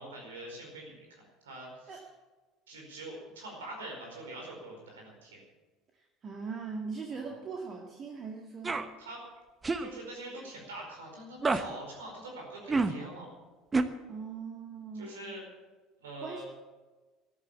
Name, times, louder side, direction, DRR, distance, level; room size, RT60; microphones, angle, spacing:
voice 1, 0.0-2.0 2.7-5.4 7.1-7.4 9.0-9.2 9.8-13.3 14.9-15.4 16.0-16.4, right 2 dB, 75° right, 0 dB, 4.9 m, -44 dB
voice 2, 6.0-8.9 14.1-15.3 16.2-16.4, right 5 dB, 40° right, 0 dB, 1.9 m, -40 dB
sound 1, 8.6-8.9 9.6-9.9 11.4-11.6 12.7-12.9 13.7-13.8, right 3 dB, 25° right, 1.1 m, -27 dB
14.5 x 11.5 x 7.4 m, 1.3 s
figure-of-eight pair, 65°, 0 cm